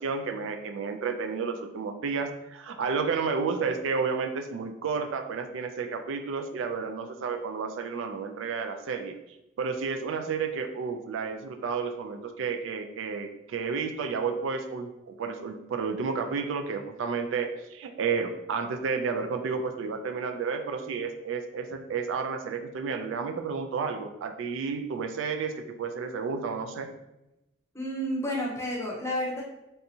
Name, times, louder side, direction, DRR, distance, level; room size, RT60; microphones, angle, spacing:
voice 1, 0.0-9.1 9.6-26.9, right 5 dB, 70° right, 6 dB, 0.3 m, -31 dB
voice 2, 27.7-29.4, equal, 15° left, -4 dB, 0.7 m, -30 dB
3.3 x 2.7 x 2.7 m, 0.91 s
head